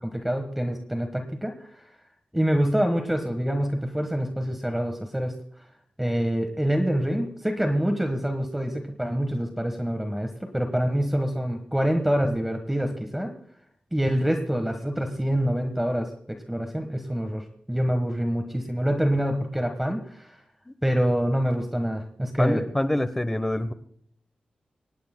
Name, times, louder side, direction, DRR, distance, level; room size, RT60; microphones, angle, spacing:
voice 1, 0.0-1.8 2.3-5.3 6.0-13.3 13.9-20.4 20.8-22.6, equal, 5° right, 5 dB, 1.3 m, -26 dB
voice 2, 22.4-23.7, left 1 dB, 10° left, 13 dB, 0.9 m, -25 dB
24.5 x 19.0 x 2.2 m, 0.68 s
wide cardioid pair, 170°, 3 cm